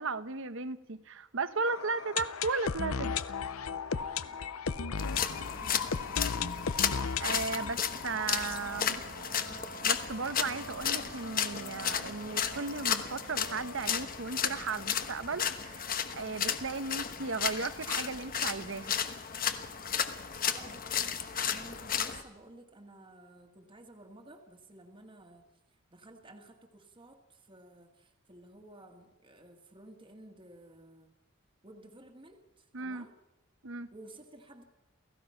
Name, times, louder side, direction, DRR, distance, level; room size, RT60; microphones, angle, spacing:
voice 1, 0.0-3.2 7.2-9.0 9.8-19.0 32.7-33.1 33.6-33.9, right 4 dB, 60° right, 13 dB, 1.0 m, -36 dB
sound 1, 1.7-9.4 9.7-9.8 10.0-10.1 10.6-10.7, left 6 dB, 85° left, 0.8 m, -36 dB
voice 2, 3.9-6.7 7.6-7.8 20.4-25.5 25.9-31.1 31.6-33.1 33.9-34.6, right 1 dB, 25° right, 3 dB, 1.8 m, -54 dB
sound 2, 5.0-22.2, left 8 dB, 40° left, 1.2 m, -34 dB
sound 3, 7.7-14.6, right 3 dB, 80° right, 3.0 m, -49 dB
29.0 x 16.5 x 5.8 m, 1.1 s
head